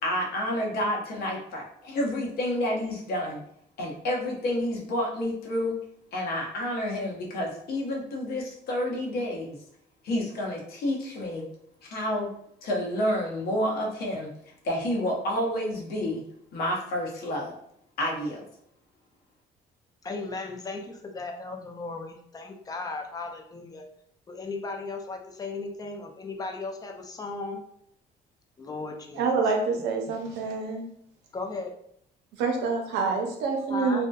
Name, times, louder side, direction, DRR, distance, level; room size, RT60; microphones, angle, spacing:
voice 1, 0.0-3.4 3.8-5.7 6.1-9.6 10.0-11.5 11.8-12.3 12.6-14.3 14.6-16.2 16.5-17.5 18.0-18.4, left 1 dB, 65° left, -1 dB, 0.7 m, -29 dB
voice 2, 20.0-23.9 24.3-27.6 28.6-29.4 29.7-29.8 31.3-31.7 33.7-34.1, left 3 dB, 20° left, 3 dB, 0.4 m, -36 dB
voice 3, 29.2-30.8 32.4-34.1, right 4 dB, 90° right, 2 dB, 0.6 m, -27 dB
2.6 x 2.1 x 2.2 m, 0.69 s
cardioid pair, 110°, 17 cm